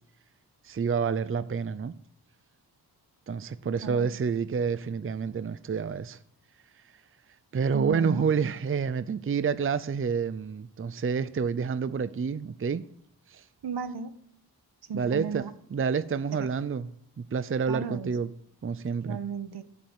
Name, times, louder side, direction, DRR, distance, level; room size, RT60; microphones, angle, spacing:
voice 1, 0.6-1.9 3.3-6.2 7.5-12.8 13.3-13.4 14.9-15.4 15.7-16.9 17.2-18.3 18.6-19.2, right 6 dB, 30° right, 0.6 m, -28 dB
voice 2, 7.7-8.3 13.6-14.1 14.9-15.5 16.3-16.5 17.7-18.2 18.9-19.6, right 6 dB, 70° right, 1.4 m, -34 dB
11.5 x 11.0 x 9.2 m
wide cardioid pair, 90°, 40 cm